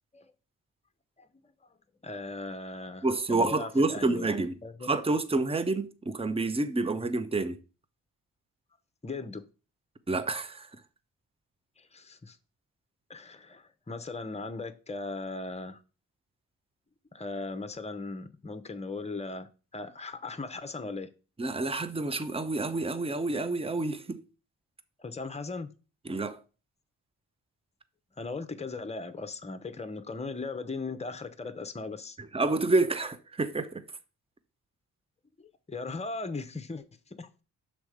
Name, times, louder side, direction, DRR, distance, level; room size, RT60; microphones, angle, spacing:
voice 1, 2.0-4.9 9.0-9.4 11.8-12.4 13.1-15.8 17.1-21.1 25.0-25.7 28.2-32.2 35.4-37.4, left 3 dB, 15° left, 0.9 m, -38 dB
voice 2, 3.0-4.5 4.8-7.6 10.1-10.7 21.4-24.2 26.1-26.4 32.3-33.8, right 3 dB, 15° right, 0.7 m, -28 dB
6.3 x 4.0 x 4.9 m
cardioid pair, 55°, 39 cm